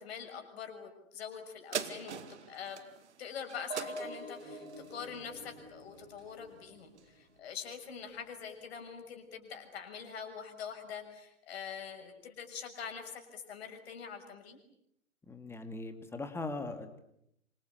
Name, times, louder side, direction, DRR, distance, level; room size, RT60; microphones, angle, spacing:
voice 1, 0.0-2.8 3.2-14.6, left 7 dB, 50° left, 4 dB, 6.6 m, -44 dB
sound 1, 1.7-6.5 7.0-7.1, right 8 dB, 60° right, 2.3 m, -43 dB
sound 2, 3.7-7.4, right 1 dB, 90° right, 7.3 m, -46 dB
voice 2, 15.3-17.0, left 2 dB, 5° left, 9 dB, 2.2 m, -40 dB
27.0 x 26.0 x 8.3 m, 0.76 s
figure-of-eight pair, 120°, 39 cm